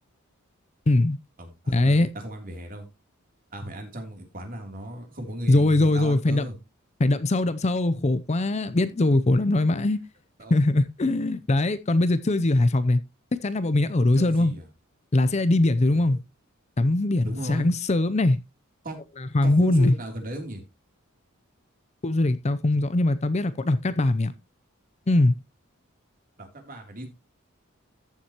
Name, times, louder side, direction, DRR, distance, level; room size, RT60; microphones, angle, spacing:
voice 1, 0.9-1.2 1.7-2.1 5.5-6.4 7.0-10.0 10.5-13.0 13.4-14.5 15.1-16.2 16.8-18.4 19.2-19.9 22.0-24.3 25.1-25.3, left 2 dB, 30° left, 0.5 m, -21 dB
voice 2, 1.4-2.9 3.5-6.6 9.0-9.5 10.4-10.6 14.1-14.6 15.9-16.2 17.2-17.7 18.8-19.0 19.4-20.6 26.4-27.1, equal, 40° right, 3.1 m, -36 dB
14.0 x 7.4 x 3.0 m
head